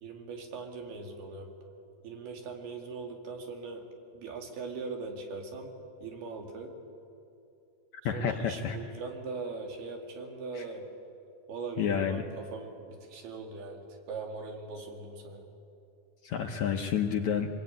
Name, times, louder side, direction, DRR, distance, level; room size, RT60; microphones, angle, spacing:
voice 1, 0.0-1.5 2.0-3.8 4.1-5.7 6.0-6.7 8.1-10.9 11.5-15.5, right 4 dB, 85° right, 2 dB, 4.5 m, -40 dB
voice 2, 8.1-8.8 10.5-10.6 11.8-12.3 16.2-17.5, left 7 dB, 70° left, 3 dB, 1.8 m, -29 dB
25.5 x 20.5 x 9.3 m, 2.7 s
omnidirectional pair, 4.3 m